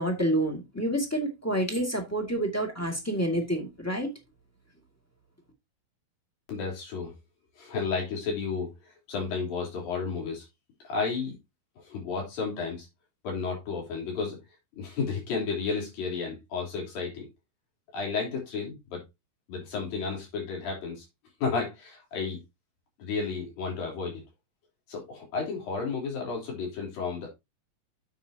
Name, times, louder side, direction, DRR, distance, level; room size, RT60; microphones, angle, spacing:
voice 1, 0.0-4.1, right 1 dB, 5° left, 1.2 m, -28 dB
voice 2, 6.5-7.1 7.6-10.5 10.8-11.4 11.8-12.9 13.2-14.4 14.8-17.3 17.9-19.0 19.5-21.1 21.4-22.4 23.0-24.2 24.9-27.3, left 4 dB, 80° left, 5.4 m, -32 dB
9.8 x 7.5 x 2.8 m
omnidirectional pair, 4.0 m